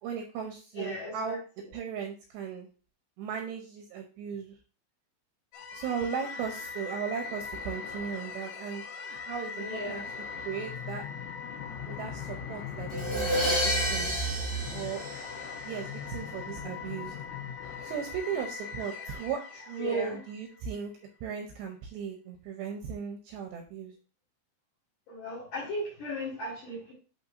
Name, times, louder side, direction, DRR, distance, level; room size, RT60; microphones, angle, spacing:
voice 1, 0.0-1.4 1.7-2.7 3.2-4.6 5.7-8.8 9.3-10.0 10.5-11.0 11.9-14.2 14.7-15.0 15.6-17.2 17.8-20.9 21.2-23.9, right 7 dB, 80° right, 3 dB, 2.6 m, -36 dB
voice 2, 0.8-1.4 9.6-10.1 18.9-19.0 19.8-20.2 25.1-26.9, left 1 dB, 50° left, -5 dB, 2.9 m, -37 dB
sound 1, 5.5-20.7, left 2 dB, 80° left, 3.3 m, -39 dB
Crash cymbal, 12.9-15.8, left 1 dB, 30° left, 0.5 m, -30 dB
11.0 x 4.3 x 2.6 m, 0.36 s
omnidirectional pair, 5.7 m